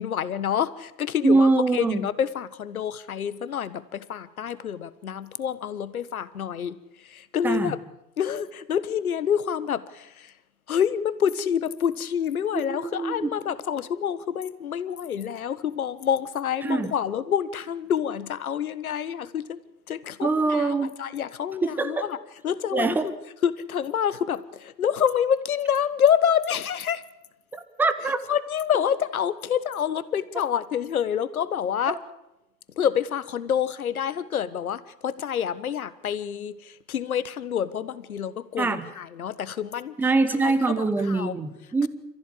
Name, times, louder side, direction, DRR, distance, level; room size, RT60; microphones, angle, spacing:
voice 1, 0.0-6.7 7.1-7.8 8.2-10.3 10.7-19.6 19.9-22.2 22.4-23.1 23.4-27.0 28.3-32.0 32.8-39.9 40.4-41.3, left 8 dB, 55° left, 16 dB, 1.5 m, -27 dB
voice 2, 1.2-2.0 7.4-7.7 12.5-13.3 16.6-16.9 20.2-21.0 21.6-22.1 22.7-23.1 27.8-28.2 31.9-32.0 38.6-38.9 40.0-41.9, right 3 dB, 5° right, 11 dB, 0.8 m, -23 dB
28.5 x 15.0 x 8.7 m, 0.92 s
figure-of-eight pair, 115°, 50 cm